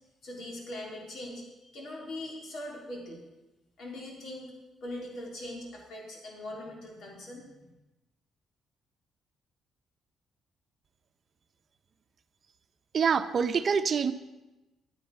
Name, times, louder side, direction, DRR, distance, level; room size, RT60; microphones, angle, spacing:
voice 1, 0.2-3.2 3.8-4.5 4.8-7.7, left 1 dB, 65° left, -1 dB, 3.5 m, -41 dB
voice 2, 12.9-14.1, right 6 dB, 50° right, 11 dB, 0.8 m, -25 dB
11.0 x 9.6 x 5.5 m, 1.0 s
cardioid pair, 90°, 0 cm